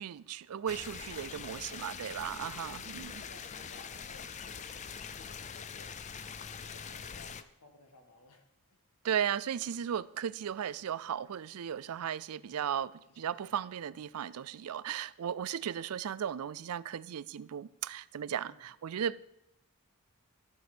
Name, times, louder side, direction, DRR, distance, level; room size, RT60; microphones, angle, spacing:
voice 1, 0.0-3.2 9.0-19.2, right 9 dB, 75° right, 0.4 m, -36 dB
sound 1, 0.7-7.4, left 6 dB, 30° left, 0.4 m, -43 dB
voice 2, 1.1-1.6 2.5-2.6 3.1-6.0 6.6-8.8 12.3-12.6 13.1-14.0 18.4-18.8, left 2 dB, 85° left, 1.8 m, -59 dB
14.0 x 6.1 x 5.1 m
head